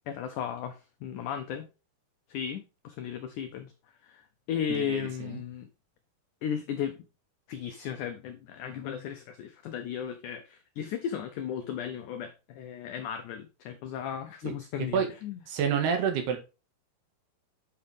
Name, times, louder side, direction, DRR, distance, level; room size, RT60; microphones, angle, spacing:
voice 1, 0.1-1.7 2.3-3.7 4.0-5.7 6.4-7.0 7.5-15.4, left 8 dB, 90° left, 1.7 m, -35 dB
voice 2, 4.7-5.4 14.4-14.5 14.9-15.1 15.5-16.4, right 7 dB, 80° right, 3.7 m, -28 dB
8.6 x 5.8 x 3.4 m
omnidirectional pair, 4.6 m